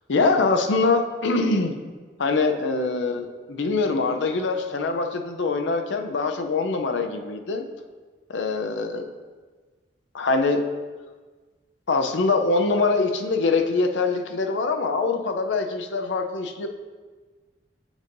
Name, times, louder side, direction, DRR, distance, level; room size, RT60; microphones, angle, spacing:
voice 1, 0.1-1.7 2.2-7.7 8.3-9.1 10.1-10.6 11.9-16.7, left 3 dB, 90° left, 6 dB, 0.5 m, -23 dB
8.0 x 5.3 x 2.6 m, 1.4 s
head